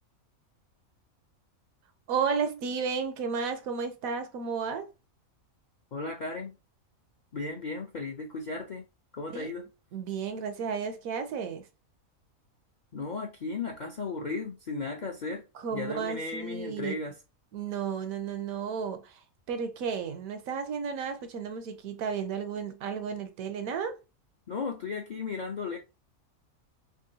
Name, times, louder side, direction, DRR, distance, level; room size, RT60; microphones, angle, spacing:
voice 1, 2.1-4.9 9.3-9.5 9.9-11.6 15.6-17.0 17.5-19.2 19.5-24.0, right 6 dB, 80° right, 1.1 m, -33 dB
voice 2, 5.9-6.5 7.3-8.8 9.1-9.7 12.9-15.4 15.7-17.1 24.5-25.8, left 3 dB, 60° left, 0.5 m, -35 dB
3.6 x 2.9 x 2.6 m
omnidirectional pair, 1.5 m